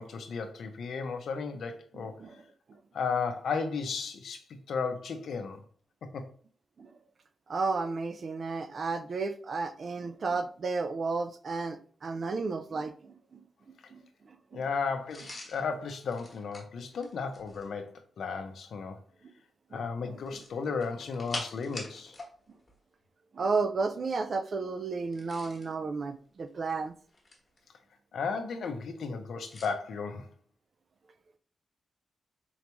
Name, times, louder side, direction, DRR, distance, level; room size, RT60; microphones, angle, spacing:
voice 1, 0.0-2.2 2.9-5.6 6.0-6.3 14.5-19.0 19.7-22.2 28.1-30.3, left 5 dB, 70° left, 0.6 m, -34 dB
voice 2, 1.9-2.4 6.8-6.9 7.5-13.4 13.9-14.0 14.5-14.7 19.7-20.2 23.3-26.9, right 4 dB, 40° right, 0.3 m, -33 dB
sound 1, 15.1-17.8 20.2-22.3 22.6-22.8 25.0-25.7 26.5-27.6 29.5-29.7, left 2 dB, 25° left, 1.1 m, -44 dB
3.9 x 3.0 x 3.4 m
wide cardioid pair, 170°, 0 cm